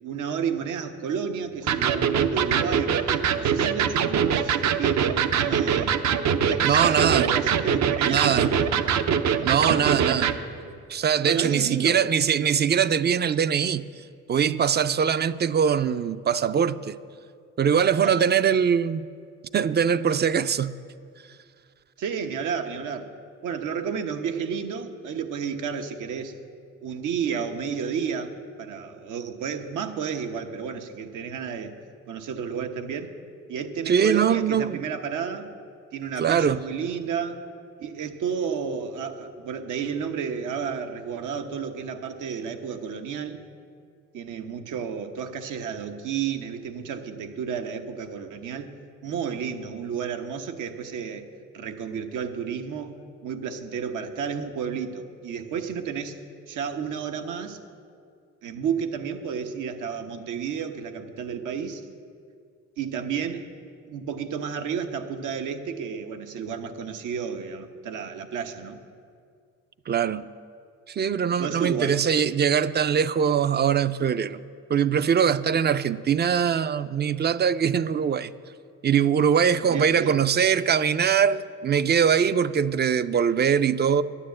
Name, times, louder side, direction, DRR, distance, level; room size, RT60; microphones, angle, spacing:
voice 1, 0.0-6.0 6.4-9.0 9.4-10.0 10.6-10.7 11.2-12.0 18.0-18.3 22.0-23.1 23.4-26.3 26.8-31.7 32.1-33.1 33.5-35.5 35.9-37.4 37.8-43.4 44.1-48.7 49.0-51.3 51.5-52.9 53.2-56.2 56.5-57.6 58.4-61.9 62.8-63.4 63.9-68.8 71.1-72.0 79.7-80.2, right 7 dB, 85° right, 1.1 m, -31 dB
Electric guitar, 1.7-10.4, right 7 dB, 65° right, 0.7 m, -23 dB
voice 2, 6.6-7.3 8.1-8.5 9.4-10.3 10.9-13.8 14.3-16.9 17.6-19.1 19.5-20.8 33.9-34.8 36.2-36.6 69.9-70.2 70.9-74.4 74.7-78.3 78.8-84.0, right 7 dB, 35° right, 0.4 m, -22 dB
9.9 x 9.6 x 7.7 m
cardioid pair, 90°, 30 cm